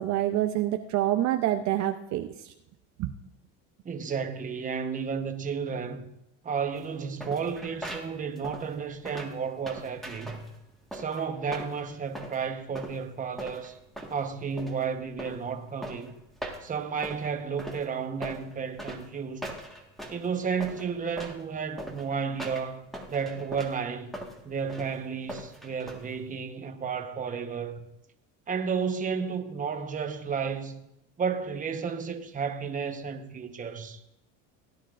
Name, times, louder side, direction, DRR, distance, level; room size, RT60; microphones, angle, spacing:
voice 1, 0.0-2.5 3.0-3.1, right 13 dB, 50° right, 0.7 m, -27 dB
voice 2, 3.8-6.1 6.4-10.4 10.9-13.8 14.1-16.1 16.6-19.5 20.1-27.9 28.5-30.8 31.2-34.0, right 6 dB, 20° right, 1.1 m, -32 dB
sound 1, 6.7-26.4, equal, ahead, 1.6 m, -41 dB
18.0 x 9.9 x 2.5 m
supercardioid pair, 120°, 36 cm